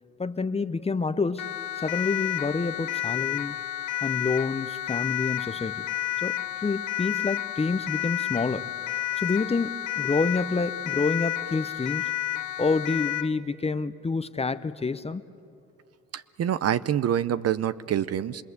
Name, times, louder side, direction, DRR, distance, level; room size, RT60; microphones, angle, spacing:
voice 1, 0.2-1.5 1.8-3.6 4.0-5.9 6.2-8.7 9.2-12.1 12.6-15.2, left 4 dB, 20° left, 13 dB, 0.7 m, -28 dB
Siren, 1.4-13.4, left 14 dB, 80° left, 0.8 m, -31 dB
voice 2, 16.1-18.4, right 10 dB, 55° right, 15 dB, 0.7 m, -26 dB
26.5 x 20.5 x 8.1 m, 2.7 s
cardioid pair, 90°, 30 cm